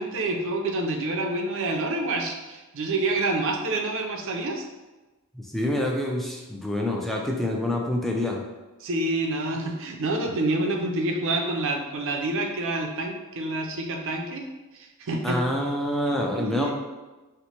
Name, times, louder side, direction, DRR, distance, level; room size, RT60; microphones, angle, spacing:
voice 1, 0.0-4.6 8.8-14.5 14.7-15.4 16.1-16.7, right 2 dB, 60° right, 2 dB, 0.5 m, -28 dB
voice 2, 5.3-8.4 15.2-16.7, left 1 dB, ahead, -1 dB, 0.4 m, -27 dB
3.0 x 2.1 x 4.1 m, 1.2 s
head